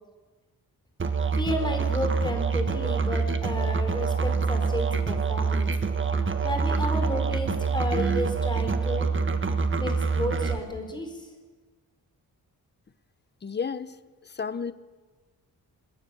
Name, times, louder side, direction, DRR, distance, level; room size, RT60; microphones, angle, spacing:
Musical instrument, 1.0-10.6, right 5 dB, 30° right, 1.5 m, -26 dB
voice 1, 1.3-5.7 6.4-9.1 9.8-11.3, left 1 dB, 10° left, 4 dB, 4.5 m, -32 dB
voice 2, 13.4-14.0 14.2-14.7, left 6 dB, 25° left, 14 dB, 0.8 m, -32 dB
27.0 x 21.5 x 7.1 m, 1.3 s
wide cardioid pair, 160°, 38 cm